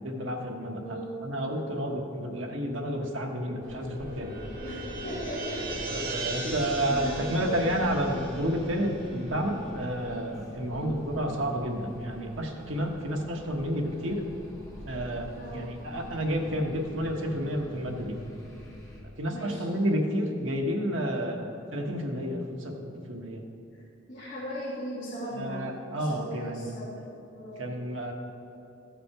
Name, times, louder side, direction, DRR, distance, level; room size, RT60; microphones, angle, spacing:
voice 1, 0.0-4.3 5.9-14.2 14.8-18.2 19.2-23.4 25.3-26.8 27.6-28.1, equal, 75° right, 1 dB, 1.2 m, -30 dB
voice 2, 0.7-1.2 4.6-5.9 6.2-7.7 10.7-11.0 15.4-15.7 19.3-19.6 23.7-23.8 24.1-27.8, right 1 dB, 45° left, -9 dB, 2.0 m, -38 dB
sound 1, 3.3-9.8, right 2 dB, 45° right, 2.1 m, -38 dB
sound 2, 3.6-19.0, equal, 15° left, 1.7 m, -44 dB
14.5 x 6.0 x 4.8 m, 2.7 s
head